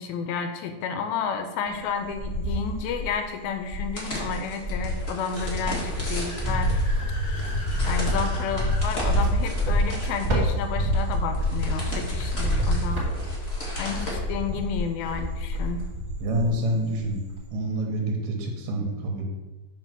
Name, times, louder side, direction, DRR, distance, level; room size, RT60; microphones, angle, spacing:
voice 1, 0.0-6.7 7.8-13.0 13.8-15.8, left 6 dB, 80° left, 7 dB, 2.4 m, -31 dB
Cricket, 1.7-3.2 3.7-16.6 16.9-17.5, equal, 25° right, 1.5 m, -27 dB
sound 1, 3.9-14.1, left 1 dB, 60° left, 0.6 m, -37 dB
Car / Accelerating revving vroom, 5.6-8.9, left 1 dB, 45° left, 1.7 m, -42 dB
voice 2, 16.2-17.2 17.5-19.2, right 1 dB, 80° right, 1 dB, 3.1 m, -27 dB
6.7 x 4.9 x 5.9 m, 1.2 s
omnidirectional pair, 4.4 m